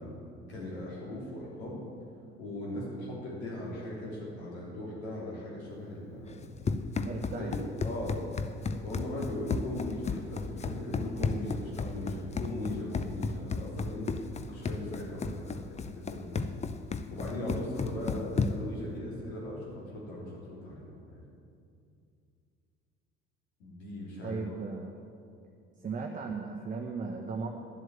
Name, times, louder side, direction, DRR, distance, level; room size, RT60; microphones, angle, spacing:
voice 1, 0.0-1.8 2.4-6.5 7.3-8.2 8.8-15.6 15.9-16.5 17.1-21.2 23.6-24.4, left 1 dB, 75° left, -5 dB, 3.3 m, -39 dB
Run, 6.3-18.8, left 4 dB, 20° left, 0.6 m, -34 dB
voice 2, 7.1-7.5 24.2-24.9 25.8-27.5, right 4 dB, 25° right, 1 dB, 1.0 m, -36 dB
11.0 x 7.7 x 7.7 m, 2.4 s
figure-of-eight pair, 60°, 33 cm